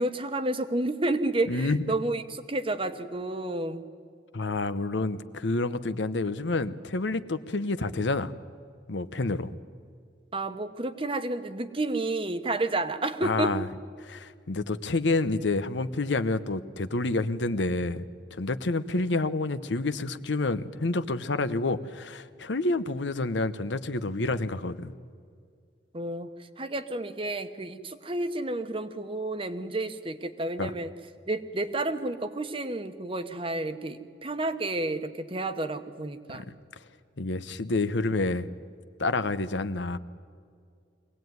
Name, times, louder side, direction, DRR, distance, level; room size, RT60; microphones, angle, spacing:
voice 1, 0.0-3.9 10.3-13.6 25.9-30.9 31.3-36.5, right 2 dB, 30° right, 10 dB, 1.1 m, -31 dB
voice 2, 1.5-1.8 4.3-8.3 8.9-9.5 13.2-13.6 14.0-18.0 18.3-24.9 30.6-30.7 36.3-36.4 37.2-38.5 39.0-40.0, left 2 dB, 85° left, 13 dB, 0.9 m, -28 dB
23.5 x 17.5 x 9.4 m, 2.3 s
head